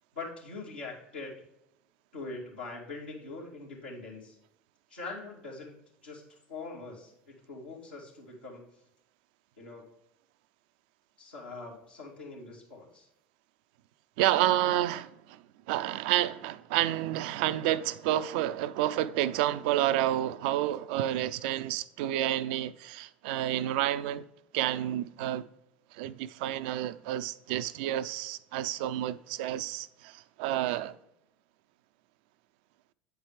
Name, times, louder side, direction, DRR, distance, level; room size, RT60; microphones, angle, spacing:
voice 1, 0.1-1.4 2.1-4.4 4.9-5.8 6.0-8.6 9.6-9.8 11.2-13.1, left 3 dB, 85° left, 2.5 m, -43 dB
voice 2, 14.2-24.2 24.5-25.5 25.9-31.0, right 13 dB, 65° right, 0.4 m, -30 dB
8.6 x 4.7 x 4.8 m
figure-of-eight pair, 70°, 5 cm